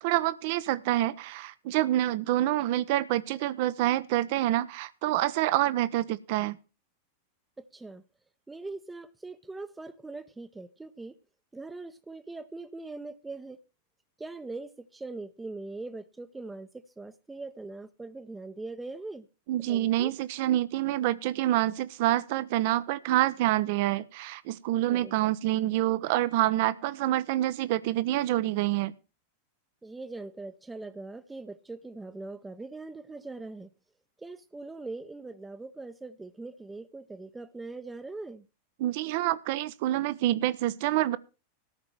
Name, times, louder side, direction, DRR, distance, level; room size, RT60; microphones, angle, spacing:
voice 1, 0.0-6.6 19.5-28.9 38.8-41.2, right 14 dB, 50° right, 0.9 m, -27 dB
voice 2, 7.6-8.0 8.5-11.1 11.5-13.6 14.2-16.7 17.0-19.3 19.7-20.1 24.9-25.3 29.8-33.7 34.2-38.4, right 3 dB, 10° right, 0.9 m, -41 dB
13.5 x 5.9 x 7.6 m
figure-of-eight pair, 90°, 0 cm